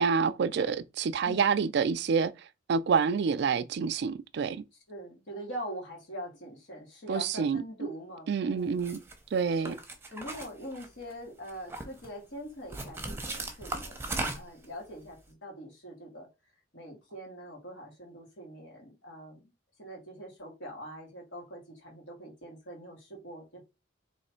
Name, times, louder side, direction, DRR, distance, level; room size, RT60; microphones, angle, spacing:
voice 1, 0.0-2.3 2.7-4.6 7.1-7.6 8.3-9.0 9.3-9.8, right 5 dB, 60° right, 0.4 m, -27 dB
voice 2, 4.9-8.8 9.5-9.8 10.1-16.3 16.7-19.5 19.8-23.7, equal, 80° left, 2.1 m, -43 dB
sound 1, 8.8-9.1 9.7-11.1 11.5-12.1 12.7-14.7, right 2 dB, 10° right, 0.7 m, -37 dB
3.2 x 3.1 x 4.3 m
head